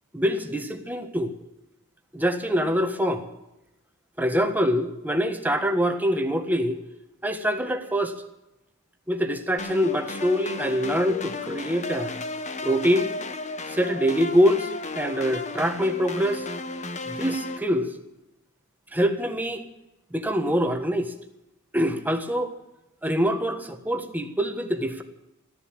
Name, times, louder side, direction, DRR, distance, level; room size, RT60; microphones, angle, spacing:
voice 1, 0.1-1.3 2.1-3.3 4.2-6.8 7.2-8.1 9.1-12.1 12.6-13.1 13.7-14.7 14.9-16.5 17.1-17.9 18.9-19.6 20.1-21.1 21.7-22.5 23.0-25.0, equal, 10° right, 6 dB, 1.5 m, -24 dB
sound 1, 9.6-17.6, left 3 dB, 35° left, 1.1 m, -34 dB
15.0 x 11.0 x 8.9 m, 0.91 s
head